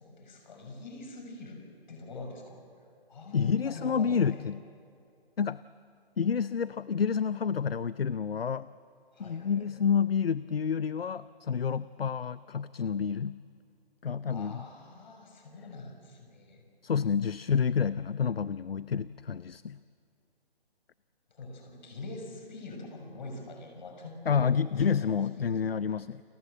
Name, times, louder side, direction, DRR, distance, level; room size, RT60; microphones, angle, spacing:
voice 1, 0.0-1.6 1.9-2.6 3.1-4.4 9.1-9.7 14.3-16.6 21.3-25.7, left 2 dB, 50° left, 3 dB, 6.5 m, -44 dB
voice 2, 3.3-4.6 5.4-5.6 6.2-8.7 9.2-13.4 14.0-14.6 16.8-19.8 24.3-26.2, left 6 dB, 70° left, 17 dB, 0.7 m, -29 dB
29.5 x 24.5 x 7.8 m, 2.4 s
figure-of-eight pair, 140°, 30 cm